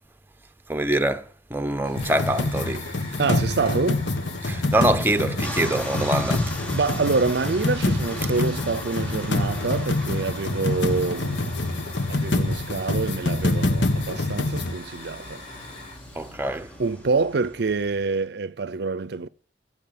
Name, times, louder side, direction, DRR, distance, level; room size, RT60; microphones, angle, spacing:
voice 1, 0.7-2.9 4.4-6.5 16.1-16.7, right 1 dB, 10° right, 0.9 m, -25 dB
Hiss / Fire, 1.8-16.3, left 2 dB, 35° left, 5.9 m, -42 dB
sound 1, 1.9-14.7, left 2 dB, 80° left, 1.6 m, -26 dB
voice 2, 3.2-4.0 6.7-11.7 12.1-15.4 16.8-19.3, right 4 dB, 65° right, 0.6 m, -26 dB
sound 2, 5.4-18.2, equal, 10° left, 3.1 m, -40 dB
15.5 x 7.1 x 8.8 m
head